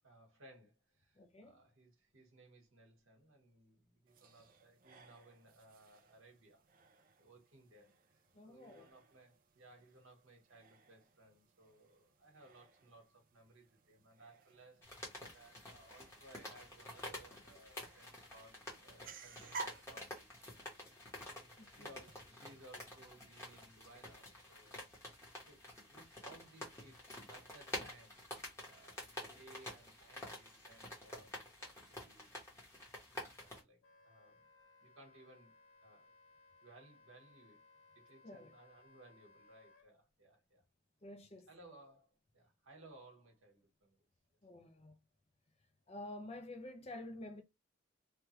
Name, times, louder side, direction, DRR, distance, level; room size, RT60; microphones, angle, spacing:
voice 1, 0.0-6.6 7.2-14.9 15.3-20.3 21.3-24.8 25.5-28.2 28.6-32.4 33.4-34.5 34.8-35.5 35.8-36.1 36.6-37.6 37.9-40.6 41.5-44.0, right 2 dB, 80° right, 1.3 m, -61 dB
voice 2, 1.2-1.6 8.3-8.9 21.6-21.9 38.2-38.5 41.0-41.5 44.4-44.9 45.9-47.4, left 1 dB, 30° left, 0.5 m, -49 dB
sound 1, 4.1-22.2, right 4 dB, 40° right, 0.4 m, -56 dB
sound 2, 14.8-33.6, left 1 dB, 15° left, 1.0 m, -50 dB
Wind instrument woodwind instrument, 33.8-39.9, left 3 dB, 80° left, 0.7 m, -65 dB
3.2 x 2.3 x 3.0 m
head